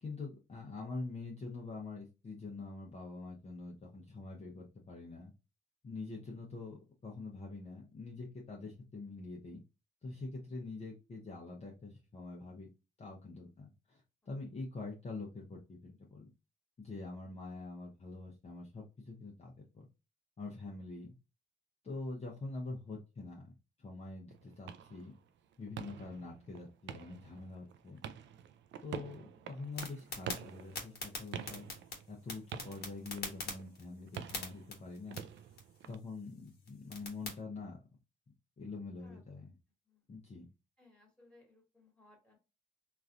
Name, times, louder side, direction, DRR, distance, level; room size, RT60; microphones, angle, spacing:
voice 1, 0.0-5.3 5.8-9.6 10.0-12.7 13.0-16.3 16.8-19.8 20.4-21.2 21.8-23.5 23.8-25.1 25.6-28.0 28.8-31.7 32.1-35.2 35.9-37.8 38.6-39.5 40.1-40.5, left 3 dB, 30° left, -2 dB, 0.8 m, -45 dB
sound 1, 24.3-36.0, right 8 dB, 65° right, 0.4 m, -48 dB
sound 2, 29.7-37.4, left 3 dB, 55° left, 1.3 m, -46 dB
voice 2, 40.8-42.4, left 2 dB, 5° left, -1 dB, 1.6 m, -63 dB
3.0 x 2.5 x 2.5 m, 0.29 s
cardioid pair, 90°, 20 cm